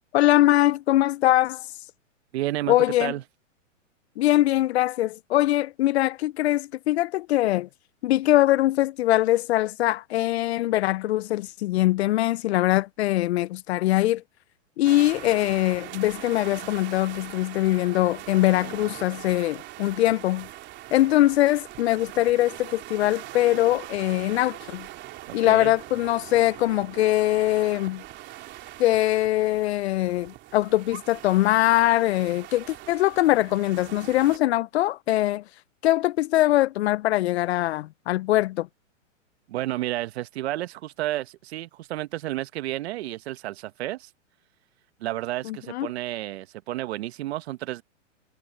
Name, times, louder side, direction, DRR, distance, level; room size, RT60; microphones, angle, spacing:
voice 1, 0.1-1.7 2.7-3.1 4.2-7.7 8.0-14.2 14.8-20.5 20.9-24.9 25.3-28.0 28.8-35.4 35.8-38.7 45.4-45.9, left 15 dB, 55° left, 0.5 m, -22 dB
voice 2, 2.3-3.2 25.3-25.7 39.5-44.1 45.0-47.8, right 15 dB, 55° right, 1.2 m, -31 dB
sound 1, 14.8-34.4, right 15 dB, 30° right, 3.1 m, -42 dB
hypercardioid pair, 140°, 38 cm